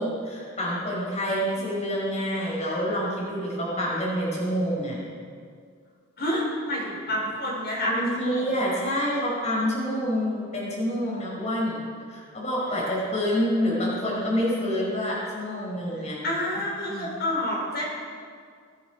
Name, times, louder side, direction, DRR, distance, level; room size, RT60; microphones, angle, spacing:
voice 1, 0.0-5.0 7.8-11.8 12.1-16.2 16.9-17.1, equal, 35° left, -5 dB, 5.1 m, -27 dB
voice 2, 6.2-8.5 16.2-17.8, left 1 dB, 55° left, -3 dB, 5.0 m, -29 dB
23.5 x 9.4 x 5.1 m, 2.1 s
head